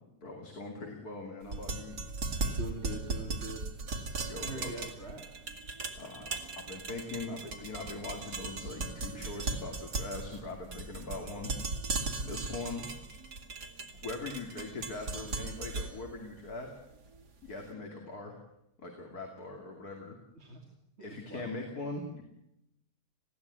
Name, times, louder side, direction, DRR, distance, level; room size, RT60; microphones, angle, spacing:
voice 1, 0.2-2.0 4.2-4.7 6.0-11.5 12.2-12.8 14.0-16.7 17.4-18.4 18.8-20.2 21.0-22.2, left 3 dB, 70° left, 2 dB, 3.2 m, -41 dB
sound 1, 1.4-17.5, right 3 dB, 80° right, 2.7 m, -38 dB
voice 2, 2.6-3.7 4.4-5.4 12.2-12.5 20.4-20.6 21.0-21.5, right 2 dB, 40° right, 0 dB, 2.8 m, -43 dB
20.5 x 16.0 x 9.7 m, 0.84 s
omnidirectional pair, 1.7 m